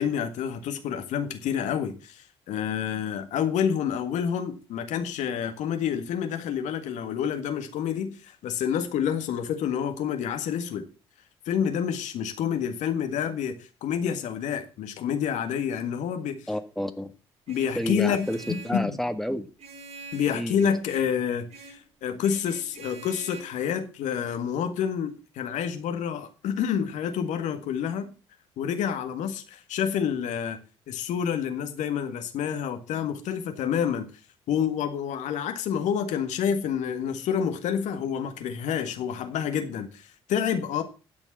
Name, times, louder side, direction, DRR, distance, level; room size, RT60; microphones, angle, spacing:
voice 1, 0.0-10.8 11.4-16.5 17.5-19.0 20.1-28.1 28.6-30.6 30.9-34.1 34.5-40.8, left 8 dB, 65° left, 1.7 m, -28 dB
voice 2, 16.5-17.1 17.7-19.5 20.3-20.7, equal, ahead, 1.7 m, -30 dB
Vehicle horn car horn honking, 17.5-18.8 19.6-21.2 21.5-21.9 22.2-23.4, right 4 dB, 50° right, 3.0 m, -45 dB
11.5 x 7.2 x 7.2 m
hypercardioid pair, 50°, 13 cm